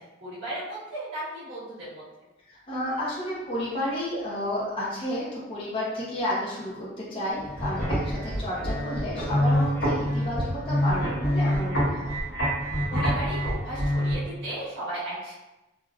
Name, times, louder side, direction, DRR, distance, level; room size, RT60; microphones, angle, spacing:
voice 1, 0.2-2.0 12.9-15.3, right 1 dB, 75° right, -11 dB, 1.4 m, -35 dB
voice 2, 2.5-12.1, left 1 dB, 30° left, -7 dB, 0.7 m, -31 dB
sound 1, 7.4-14.1, equal, 55° left, 1.0 m, -26 dB
3.3 x 2.4 x 2.3 m, 1.0 s
head